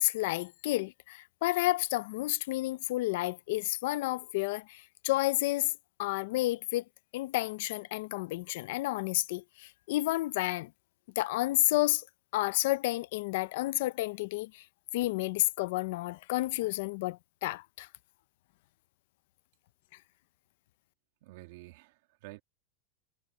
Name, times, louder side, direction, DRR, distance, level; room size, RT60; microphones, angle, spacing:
voice 1, 0.0-5.7 6.0-6.8 7.1-10.7 11.2-12.1 12.3-14.6 14.9-17.9, left 18 dB, 55° left, 0.6 m, -30 dB
voice 2, 21.2-22.4, right 18 dB, 55° right, 2.1 m, -50 dB
supercardioid pair, 170°, 0 cm